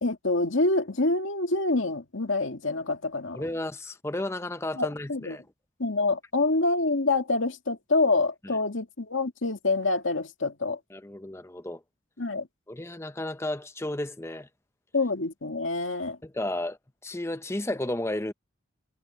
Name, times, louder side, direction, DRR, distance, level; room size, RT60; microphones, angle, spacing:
voice 1, 0.0-3.4 4.8-5.4 5.8-10.8 12.2-12.5 14.9-16.2, left 3 dB, 75° left, 2.2 m, -26 dB
voice 2, 3.3-5.4 10.9-11.8 12.7-14.5 16.2-18.3, left 1 dB, 15° left, 0.7 m, -33 dB
head